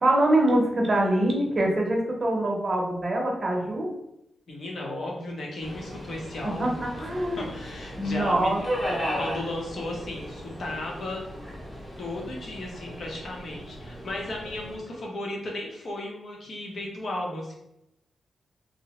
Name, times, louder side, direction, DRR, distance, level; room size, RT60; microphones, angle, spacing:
voice 1, 0.0-3.9 6.4-7.5 8.0-8.6 8.9-9.1, right 1 dB, 30° right, -1 dB, 0.7 m, -24 dB
voice 2, 4.5-11.2 12.0-17.5, left 1 dB, 55° left, -1 dB, 0.7 m, -35 dB
Subway metro underground, 5.6-14.8, equal, 20° left, 0.7 m, -36 dB
2.7 x 2.0 x 2.9 m, 0.84 s
wide cardioid pair, 140°, 0 cm